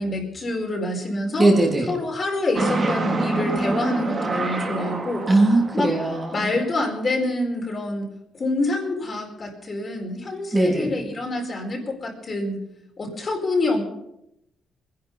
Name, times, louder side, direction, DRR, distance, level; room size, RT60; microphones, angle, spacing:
voice 1, 0.0-1.5 1.9-5.2 5.7-5.9 6.3-8.1 8.3-12.6 13.0-13.8, left 2 dB, 35° left, 1 dB, 4.6 m, -26 dB
voice 2, 1.4-1.9 5.3-6.5 10.5-10.9, right 2 dB, 20° right, -1 dB, 3.4 m, -19 dB
sound 1, 2.6-6.8, right 2 dB, 35° right, 2.4 m, -27 dB
23.0 x 11.0 x 5.6 m, 0.81 s
cardioid pair, 110°, 0 cm